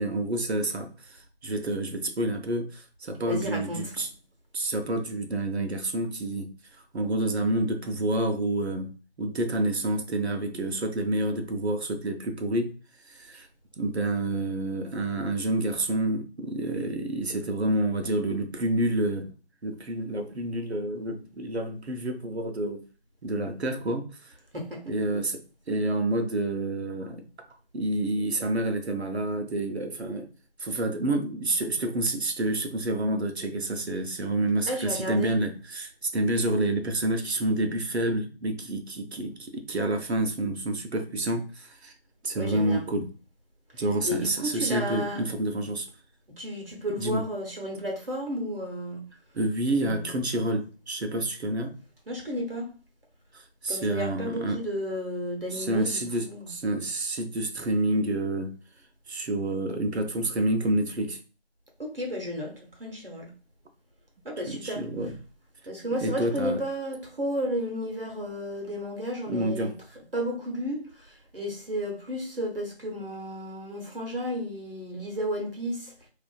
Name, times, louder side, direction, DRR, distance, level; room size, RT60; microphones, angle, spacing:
voice 1, 0.0-4.1 4.5-6.5 6.9-8.9 9.2-12.7 13.1-13.5 13.8-19.3 19.6-22.8 23.2-24.3 24.9-25.4 25.7-27.2 27.7-30.3 30.6-41.9 42.2-43.1 43.7-45.9 47.0-47.3 49.3-51.8 53.3-54.6 55.5-58.5 59.1-61.2 64.5-65.2 66.0-66.6 69.3-69.8, right 1 dB, 80° right, 0.7 m, -28 dB
voice 2, 3.2-3.9 24.5-24.8 34.7-35.3 42.3-42.8 44.0-45.2 46.4-49.0 49.7-50.1 52.1-52.7 53.7-56.5 61.8-62.5 62.8-63.3 64.2-64.8 65.7-69.7 70.1-75.9, equal, 60° right, 0.9 m, -33 dB
2.4 x 2.4 x 2.2 m
figure-of-eight pair, 175°, 32 cm